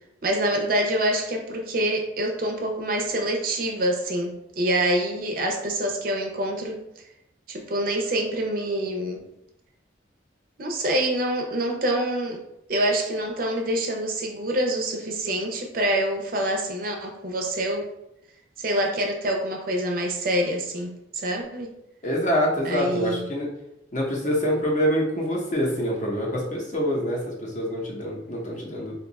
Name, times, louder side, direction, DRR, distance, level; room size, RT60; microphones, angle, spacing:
voice 1, 0.2-6.8 7.5-9.2 10.6-12.4 12.7-17.9 18.6-21.7 22.6-23.3, right 1 dB, 45° right, 2 dB, 0.5 m, -26 dB
voice 2, 22.0-23.5 23.9-28.9, equal, 40° left, -2 dB, 0.7 m, -25 dB
2.6 x 2.3 x 4.0 m, 0.83 s
head